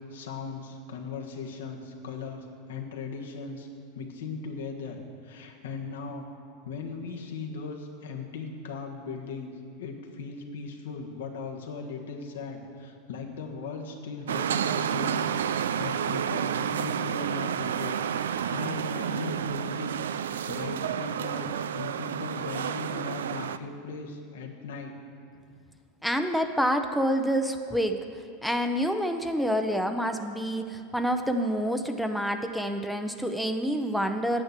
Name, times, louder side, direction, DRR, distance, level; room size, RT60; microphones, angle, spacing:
voice 1, 0.0-3.7 3.9-5.0 5.2-6.3 6.6-9.5 9.8-15.4 15.8-24.9, left 4 dB, 85° left, 1 dB, 1.4 m, -38 dB
sound 1, 14.3-23.6, right 8 dB, 85° right, 0.3 m, -30 dB
voice 2, 26.0-28.0 28.4-34.4, equal, ahead, 6 dB, 0.7 m, -27 dB
9.7 x 7.8 x 6.7 m, 2.3 s
hypercardioid pair, 105°, 0 cm